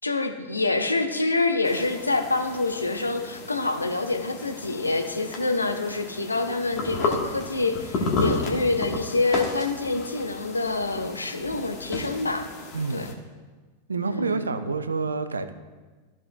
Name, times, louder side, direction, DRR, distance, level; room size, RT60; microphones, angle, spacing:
voice 1, 0.0-12.5 12.9-13.1 14.0-14.4, left 3 dB, 80° left, 6 dB, 0.7 m, -26 dB
sound 1, 1.6-13.1, left 3 dB, 35° left, 1.3 m, -33 dB
voice 2, 12.7-13.2 13.9-15.5, right 4 dB, 75° right, 11 dB, 0.5 m, -28 dB
14.0 x 5.9 x 2.2 m, 1.3 s
figure-of-eight pair, 90°, 0 cm